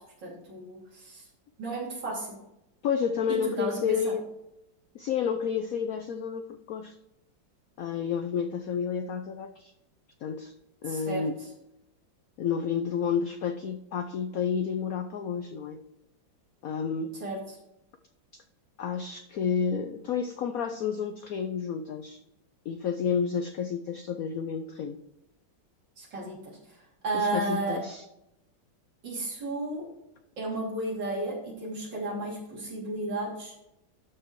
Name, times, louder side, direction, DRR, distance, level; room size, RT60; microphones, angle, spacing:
voice 1, 0.2-1.2 1.6-2.4 3.3-4.1 10.9-11.3 17.2-17.6 26.0-26.8 27.0-27.8 29.0-29.9 30.4-33.5, right 2 dB, 65° right, -4 dB, 3.8 m, -33 dB
voice 2, 2.8-4.2 4.9-6.9 7.8-9.7 10.2-10.5 10.8-11.4 12.4-15.8 16.6-17.1 18.8-22.2 22.7-25.0 27.1-28.0, left 7 dB, 75° left, 8 dB, 0.8 m, -30 dB
12.0 x 4.8 x 4.6 m, 0.84 s
omnidirectional pair, 2.1 m